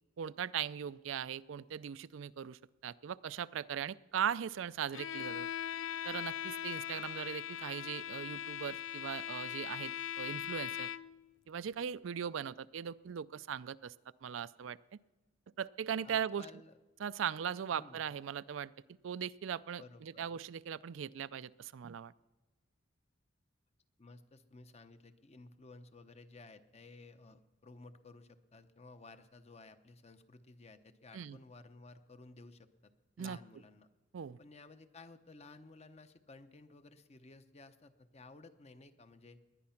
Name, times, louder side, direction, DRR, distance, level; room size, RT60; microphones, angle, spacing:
voice 1, 0.2-5.5 6.0-10.9 11.5-13.9 14.2-14.8 15.6-16.5 17.0-18.7 19.0-22.1 31.1-31.4 33.2-33.4 34.1-34.4, right 8 dB, 75° right, 17 dB, 0.4 m, -39 dB
Bowed string instrument, 4.9-11.2, left 10 dB, 80° left, 0.4 m, -40 dB
voice 2, 16.0-16.8 17.7-18.0 19.8-20.2 24.0-32.9 33.2-33.9 34.4-39.4, left 3 dB, 35° left, 10 dB, 0.8 m, -55 dB
19.0 x 10.5 x 5.8 m, 1.1 s
head